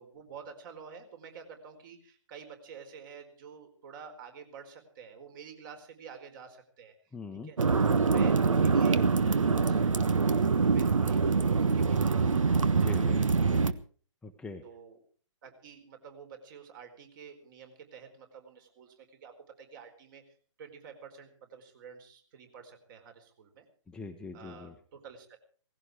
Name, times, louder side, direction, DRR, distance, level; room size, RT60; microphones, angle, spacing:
voice 1, 0.0-6.9 7.3-7.6 7.9-12.4 14.6-15.0 15.4-20.2 20.6-23.6 24.3-25.4, right 6 dB, 40° right, 7 dB, 4.4 m, -49 dB
voice 2, 7.1-7.5 12.7-13.2 14.2-14.6 23.9-24.7, left 3 dB, 5° left, 4 dB, 0.9 m, -41 dB
sound 1, 7.6-13.7, right 4 dB, 80° right, 1.3 m, -25 dB
18.0 x 16.0 x 4.9 m, 0.43 s
hypercardioid pair, 140°, 16 cm